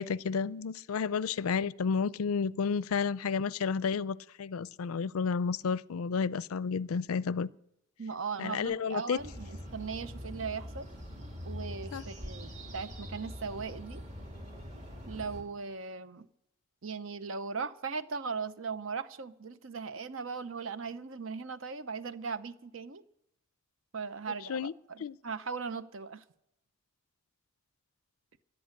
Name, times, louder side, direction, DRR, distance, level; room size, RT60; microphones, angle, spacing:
voice 1, 0.0-7.5 8.4-9.2 11.9-12.0 24.5-24.7 25.0-25.2, left 5 dB, 90° left, 0.4 m, -31 dB
voice 2, 8.0-10.9 11.4-14.0 15.0-16.3 16.8-23.0 23.9-26.2, right 5 dB, 65° right, 0.8 m, -38 dB
sound 1, 9.2-15.4, equal, 35° right, 2.7 m, -43 dB
16.5 x 10.5 x 6.5 m
head